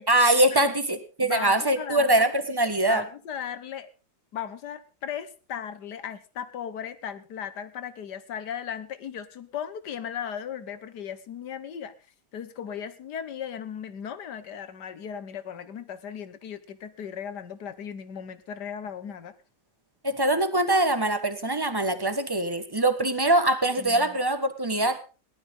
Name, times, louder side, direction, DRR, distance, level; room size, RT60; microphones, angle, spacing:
voice 1, 0.1-3.0 20.0-25.0, right 1 dB, 15° right, 10 dB, 1.2 m, -23 dB
voice 2, 1.2-2.3 2.9-3.9 4.3-11.9 12.3-19.3 23.8-24.2, left 8 dB, 70° left, 13 dB, 1.7 m, -37 dB
19.0 x 11.5 x 3.8 m, 0.33 s
omnidirectional pair, 1.9 m